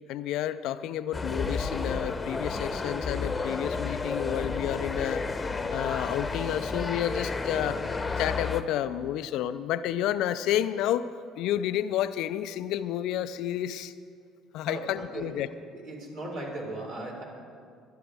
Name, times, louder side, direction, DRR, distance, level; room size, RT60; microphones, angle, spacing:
voice 1, 0.1-5.2 5.7-7.8 8.2-11.1 11.4-13.9 14.5-15.5, left 11 dB, 70° left, 13 dB, 0.4 m, -30 dB
sound 1, 1.1-8.6, left 4 dB, 25° left, 0.9 m, -31 dB
voice 2, 7.4-7.8 14.6-15.4 15.7-17.2, right 2 dB, 70° right, -3 dB, 4.2 m, -38 dB
23.0 x 10.0 x 3.5 m, 2.2 s
hypercardioid pair, 60°, 0 cm